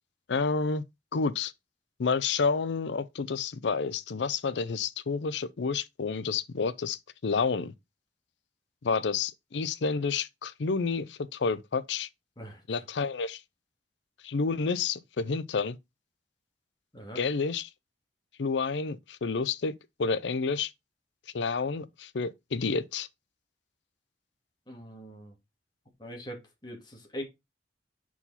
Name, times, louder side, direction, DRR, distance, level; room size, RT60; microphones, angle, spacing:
voice 1, 0.3-0.8 1.1-1.5 2.0-7.7 8.8-12.1 12.7-13.4 14.2-15.8 17.2-17.7 18.4-19.7 20.0-20.7 21.3-23.1, left 4 dB, 75° left, 0.5 m, -29 dB
voice 2, 12.4-12.8 16.9-17.2 24.7-25.3 26.0-27.2, equal, 25° left, 2.0 m, -42 dB
5.6 x 4.8 x 4.0 m
head